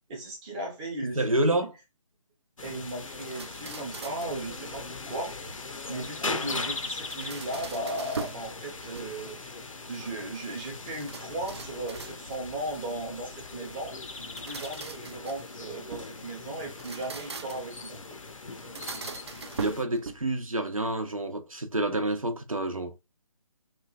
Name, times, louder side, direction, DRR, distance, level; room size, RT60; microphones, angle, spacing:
voice 1, 0.1-1.7 2.6-5.3 5.9-9.4 9.9-14.0 14.4-18.0, right 1 dB, 10° right, 0.6 m, -36 dB
voice 2, 1.0-1.7 19.6-23.0, right 1 dB, 80° right, 0.7 m, -28 dB
sound 1, 2.6-19.8, left 3 dB, 70° left, 0.6 m, -40 dB
sound 2, 3.2-4.4 6.8-8.5 8.8-9.4 10.9-12.5 14.1-16.2 16.7-17.8 18.6-20.4, right 5 dB, 50° right, 0.4 m, -41 dB
3.0 x 2.3 x 2.3 m
figure-of-eight pair, 145°, 17 cm